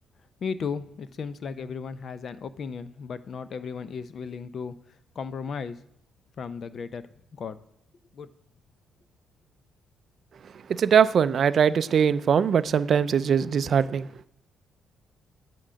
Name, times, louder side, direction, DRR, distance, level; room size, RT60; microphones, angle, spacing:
voice 1, 0.4-5.8 6.4-7.0 7.3-7.6 8.1-8.3, left 5 dB, 55° left, 0.5 m, -35 dB
voice 2, 10.4-14.2, right 7 dB, 55° right, 0.4 m, -22 dB
9.7 x 3.7 x 5.1 m
cardioid pair, 90°, 0 cm